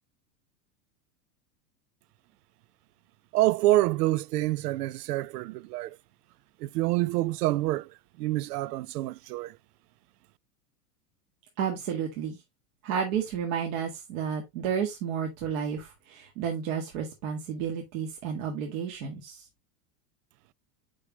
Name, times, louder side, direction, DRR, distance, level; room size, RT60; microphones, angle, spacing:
voice 1, 3.3-6.0 6.6-7.9 8.2-9.6, right 16 dB, 90° right, 0.5 m, -27 dB
voice 2, 11.6-12.4 12.8-19.4, right 7 dB, 60° right, 1.9 m, -31 dB
6.4 x 5.3 x 2.9 m
supercardioid pair, 150°, 46 cm